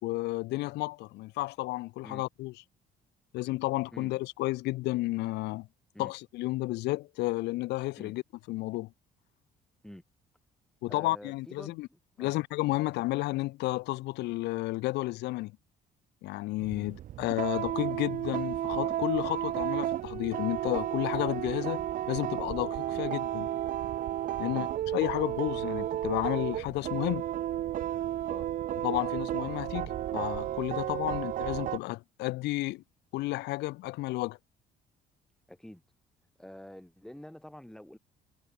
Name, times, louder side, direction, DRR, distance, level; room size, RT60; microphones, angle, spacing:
voice 1, 0.0-2.5 3.3-5.7 6.0-8.2 8.5-8.9 10.8-11.9 12.2-15.5 16.2-23.5 24.4-27.2 28.8-32.8 33.1-34.4, left 20 dB, 85° left, 2.0 m, -32 dB
voice 2, 10.9-12.3 16.7-16.9 22.9-23.0 24.5-24.7 28.3-28.5 35.5-35.8 36.4-38.0, left 1 dB, 5° left, 3.8 m, -48 dB
sound 1, 16.6-31.8, right 12 dB, 50° right, 0.5 m, -33 dB
cardioid pair, 110°, 17 cm